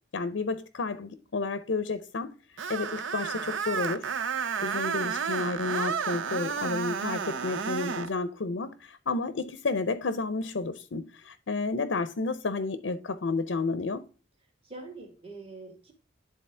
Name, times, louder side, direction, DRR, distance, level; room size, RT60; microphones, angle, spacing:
voice 1, 0.1-4.1 4.6-14.0, left 3 dB, 75° left, 0.5 m, -31 dB
Screech, 2.6-8.1, right 6 dB, 80° right, 0.6 m, -31 dB
voice 2, 14.6-15.9, right 3 dB, 30° right, 1.9 m, -45 dB
11.0 x 3.9 x 3.3 m
head